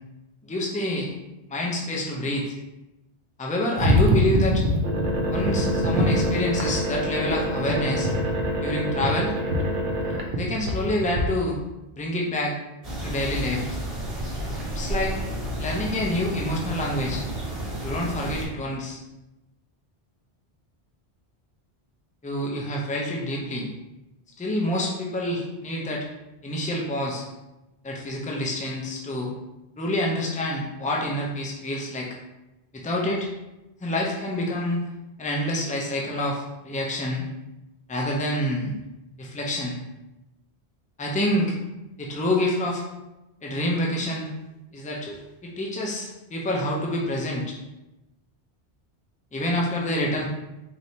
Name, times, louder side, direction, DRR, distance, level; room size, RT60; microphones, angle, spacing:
voice 1, 0.4-1.1 1.5-2.5 3.4-4.6 5.3-8.1 8.6-9.3 10.4-11.6 12.0-12.5 13.0-13.6 14.7-15.2 15.6-17.2 17.8-19.0 22.2-23.7 24.4-26.0 26.4-27.2 27.8-29.3 29.8-32.2 32.7-33.3 33.8-34.8 35.2-37.2 37.9-38.7 39.2-39.8 41.0-41.6 42.0-42.8 43.4-44.3 44.7-47.6 49.3-50.3, left 1 dB, 10° left, -2 dB, 0.4 m, -27 dB
sound 1, 3.8-11.2, equal, 55° right, 0.7 m, -24 dB
sound 2, 12.8-18.5, right 1 dB, 35° right, 1.1 m, -31 dB
4.3 x 3.2 x 2.8 m, 0.98 s
omnidirectional pair, 1.1 m